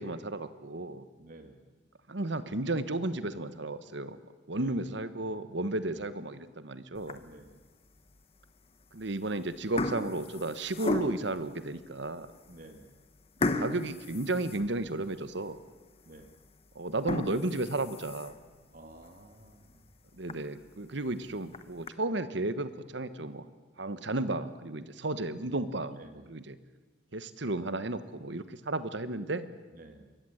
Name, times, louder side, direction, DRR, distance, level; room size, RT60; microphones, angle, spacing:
voice 1, 0.0-1.0 2.1-4.2 4.5-7.2 8.9-12.3 13.4-15.6 16.7-18.3 20.2-23.4 23.8-26.0 26.3-26.6 27.1-29.5, right 2 dB, 70° right, 13 dB, 1.3 m, -33 dB
voice 2, 1.2-1.6 4.5-4.9 5.8-6.0 7.2-7.6 12.5-13.0 16.1-16.3 18.7-19.9 26.0-26.3 29.7-30.2, right 1 dB, 45° right, 6 dB, 2.3 m, -52 dB
sound 1, 7.0-7.5 8.1-8.2 9.0-9.3 9.5-11.4 12.0-12.1 12.5-12.6 13.4-15.2 15.6-15.7 16.2-16.3 16.9-18.5 19.0-19.1 19.5-19.6 19.9-20.0 20.3-20.4 21.3-21.9, left 2 dB, 30° left, 1.0 m, -35 dB
24.5 x 14.5 x 9.9 m, 1.3 s
head